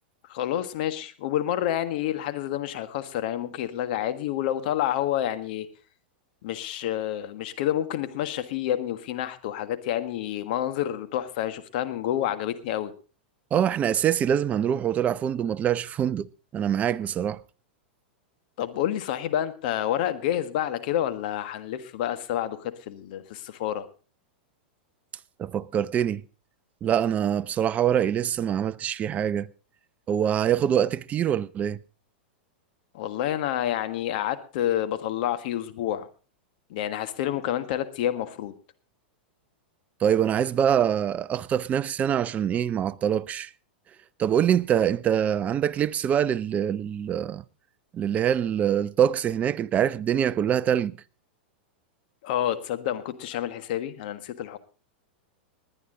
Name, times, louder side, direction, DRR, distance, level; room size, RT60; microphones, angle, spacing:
voice 1, 0.3-5.7 6.4-12.9 18.6-23.9 32.9-36.1 36.7-38.5 52.2-54.6, left 11 dB, 60° left, 1.5 m, -29 dB
voice 2, 13.5-16.3 16.5-17.4 25.4-26.2 26.8-29.5 30.1-31.8 40.0-43.5 44.2-47.4 47.9-51.0, right 9 dB, 25° right, 0.6 m, -24 dB
20.0 x 9.9 x 3.8 m
hypercardioid pair, 115°, 6 cm